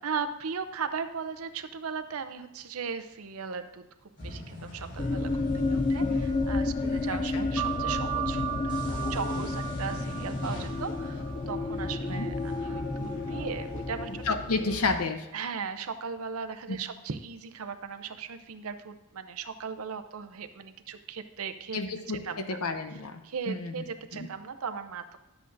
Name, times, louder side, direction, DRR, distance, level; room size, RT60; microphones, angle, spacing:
voice 1, 0.0-3.8 4.2-14.7 15.3-21.8 22.1-22.6 23.2-25.2, right 6 dB, 70° right, 10 dB, 0.6 m, -37 dB
sound 1, 4.2-15.0, left 1 dB, 55° left, 3.1 m, -42 dB
sound 2, 5.0-14.8, left 3 dB, 25° left, 0.3 m, -31 dB
voice 2, 7.1-7.5 12.1-12.3 14.3-15.3 16.7-16.8 21.7-23.2 23.5-23.7 24.1-24.3, left 3 dB, 80° left, 8 dB, 0.8 m, -31 dB
sound 3, 7.6-12.7, right 14 dB, 5° right, 1.0 m, -37 dB
11.5 x 7.8 x 2.6 m, 1.0 s
head